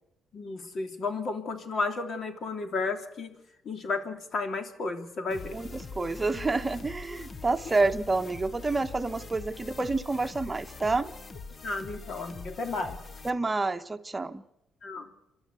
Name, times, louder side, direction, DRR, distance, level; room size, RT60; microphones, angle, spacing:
voice 1, 0.3-3.3 3.6-5.6 11.6-13.0 14.8-15.1, left 3 dB, 55° left, 7 dB, 3.1 m, -33 dB
sound 1, 5.3-13.3, left 3 dB, 35° left, 1.1 m, -43 dB
voice 2, 5.5-11.1 13.2-14.4, right 3 dB, 20° right, 8 dB, 1.3 m, -28 dB
28.0 x 12.0 x 8.3 m, 0.87 s
cardioid pair, 90°, 0 cm